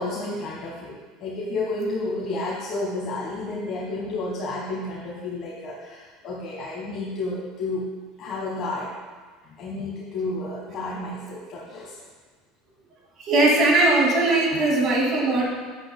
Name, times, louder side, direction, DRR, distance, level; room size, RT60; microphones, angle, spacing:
voice 1, 0.0-7.9 8.2-8.9 9.4-12.0 14.5-14.7, left 2 dB, 45° left, -4 dB, 1.4 m, -31 dB
voice 2, 13.2-15.4, right 2 dB, 40° right, -2 dB, 2.2 m, -19 dB
11.0 x 8.4 x 2.2 m, 1.4 s
cardioid pair, 140°, 0 cm